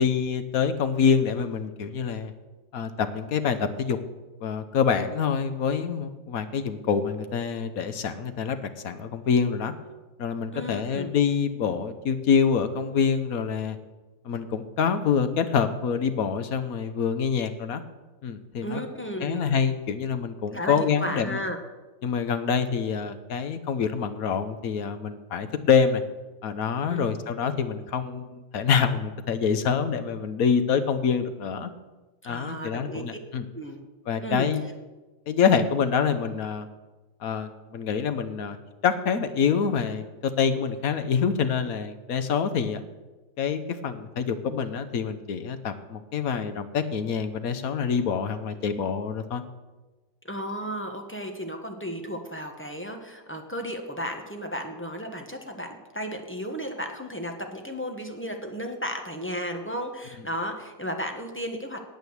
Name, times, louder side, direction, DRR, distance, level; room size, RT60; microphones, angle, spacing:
voice 1, 0.0-2.3 2.7-4.0 4.4-9.7 10.2-13.8 14.2-17.8 18.2-18.8 19.2-21.4 22.0-26.0 26.4-31.7 32.2-33.4 34.1-34.6 35.3-36.7 37.2-38.6 38.8-42.8 43.4-49.4, left 6 dB, 60° left, 10 dB, 1.1 m, -26 dB
voice 2, 10.5-11.1 18.6-19.5 20.5-21.6 26.9-27.2 32.2-33.2 33.5-33.8 34.2-34.5 50.2-61.8, equal, 10° left, 3 dB, 0.9 m, -34 dB
9.1 x 8.8 x 8.0 m, 1.2 s
omnidirectional pair, 2.0 m